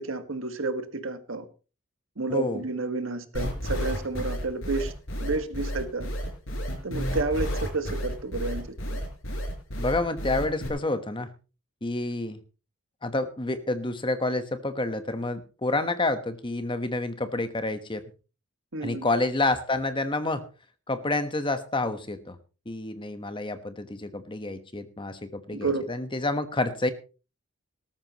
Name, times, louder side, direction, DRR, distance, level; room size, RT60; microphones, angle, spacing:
voice 1, 0.0-1.4 2.2-4.9 5.2-6.1 6.8-9.0 18.7-19.1 25.5-25.8, right 3 dB, 70° right, 8 dB, 1.7 m, -30 dB
voice 2, 2.3-2.6 9.8-11.3 11.8-12.4 13.0-18.0 18.8-20.4 20.9-22.4 22.7-26.9, left 2 dB, 25° left, 10 dB, 1.2 m, -29 dB
sound 1, 3.3-10.7, equal, 65° left, 5.7 m, -31 dB
19.0 x 13.5 x 3.0 m, 0.34 s
head